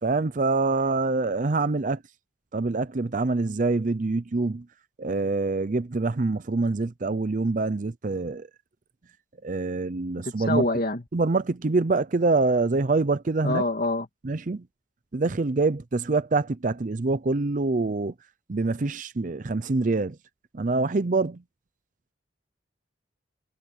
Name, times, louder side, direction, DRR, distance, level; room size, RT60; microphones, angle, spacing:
voice 1, 0.0-2.0 2.5-4.7 5.0-8.5 9.4-10.6 11.1-13.6 14.2-14.6 15.1-18.1 18.5-20.2 20.5-21.4, right 3 dB, 45° right, 0.6 m, -25 dB
voice 2, 10.2-11.0 13.4-14.1, left 2 dB, 50° left, 2.6 m, -26 dB
head